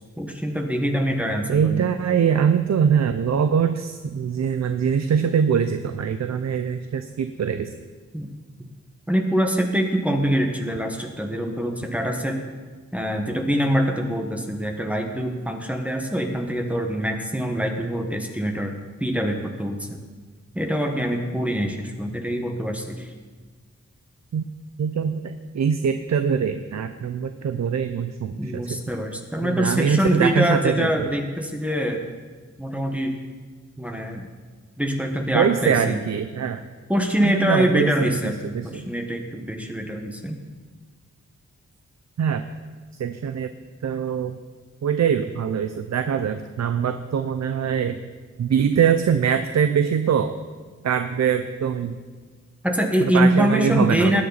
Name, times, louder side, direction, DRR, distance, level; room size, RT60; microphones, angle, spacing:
voice 1, 0.2-1.8 8.1-8.3 9.1-12.4 12.9-18.7 19.0-19.9 20.5-23.1 28.4-32.0 32.6-33.2 33.8-34.2 34.8-36.0 36.9-40.4 52.6-54.2, equal, 5° right, 2 dB, 1.2 m, -24 dB
voice 2, 1.5-7.7 24.3-24.4 24.8-28.8 29.4-31.1 35.3-36.6 37.2-38.9 42.2-42.4 43.0-43.5 43.8-44.4 44.8-48.0 48.4-50.3 50.8-52.0 53.0-54.2, right 7 dB, 65° right, 9 dB, 0.6 m, -23 dB
20.0 x 9.5 x 4.1 m, 1.4 s
wide cardioid pair, 135°, 29 cm